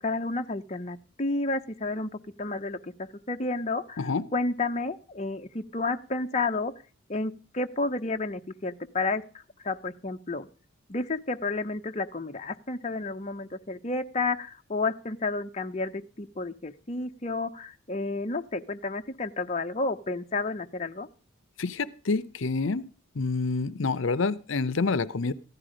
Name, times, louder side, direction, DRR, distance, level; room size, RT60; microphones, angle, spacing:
voice 1, 0.0-2.1 2.4-6.7 7.1-9.2 9.6-10.5 10.9-21.1, left 3 dB, 35° left, 6 dB, 0.7 m, -31 dB
voice 2, 21.6-22.8 23.2-25.3, left 4 dB, 70° left, 16 dB, 0.7 m, -27 dB
15.0 x 11.5 x 5.1 m, 0.38 s
head